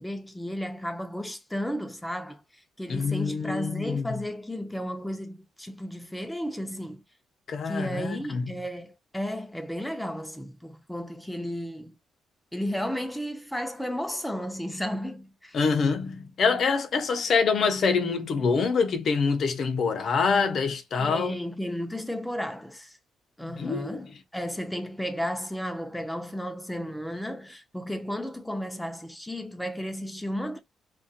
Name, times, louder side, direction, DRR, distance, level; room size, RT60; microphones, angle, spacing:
voice 1, 0.0-7.0 7.6-12.0 12.5-15.6 21.0-23.0 23.4-30.6, equal, 5° left, 0.4 m, -33 dB
voice 2, 2.9-4.0 7.5-8.4 15.5-21.4 23.4-24.0, left 5 dB, 55° left, 0.6 m, -25 dB
2.3 x 2.2 x 2.7 m
cardioid pair, 90°, 0 cm